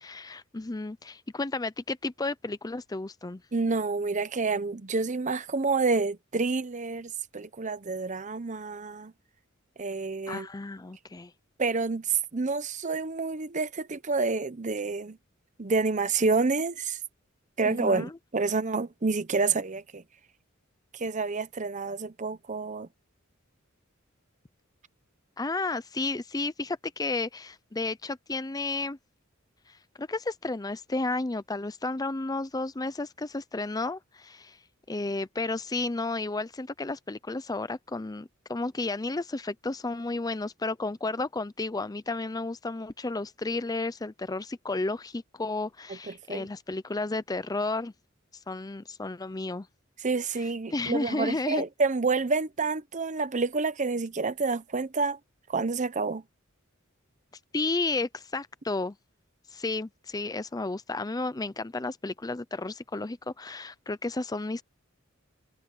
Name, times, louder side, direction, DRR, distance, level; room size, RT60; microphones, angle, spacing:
voice 1, 0.0-3.4 10.3-11.3 17.6-18.2 25.4-29.0 29.7-34.6 34.9-47.9 48.5-49.7 50.7-51.6 57.5-59.0 59.5-64.6, left 3 dB, 20° left, 0.5 m, -32 dB
voice 2, 3.5-9.1 9.8-10.5 11.6-15.2 15.6-17.0 17.6-20.0 20.9-22.9 45.9-46.5 50.0-55.2 55.5-56.2, right 4 dB, 35° right, 0.8 m, -28 dB
head